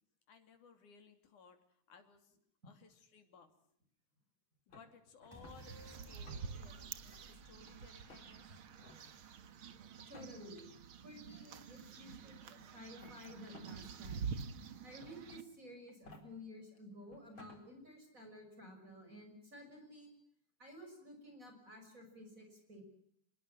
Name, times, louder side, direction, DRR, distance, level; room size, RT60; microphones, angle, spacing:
voice 1, 0.3-2.4 2.6-3.5 4.7-7.0 7.3-8.4, left 5 dB, 85° left, 6 dB, 4.2 m, -61 dB
sound 1, 4.7-5.6 6.1-6.7 7.1-7.7 8.1-8.3 8.8-9.0 10.0-10.6 11.7-11.8 12.8-13.8 14.2-14.3 15.0-15.4 15.9-16.2 16.8-16.9 17.1-17.6, left 2 dB, 40° left, 4.4 m, -57 dB
sound 2, 5.3-8.9 9.2-9.3, equal, 5° left, 3.9 m, -57 dB
sound 3, 5.5-15.4, right 6 dB, 50° right, 1.9 m, -48 dB
voice 2, 10.0-10.7 11.0-14.2 14.8-20.1 20.6-22.8, left 1 dB, 25° right, 4 dB, 6.2 m, -53 dB
26.5 x 21.5 x 7.5 m, 0.69 s
omnidirectional pair, 3.5 m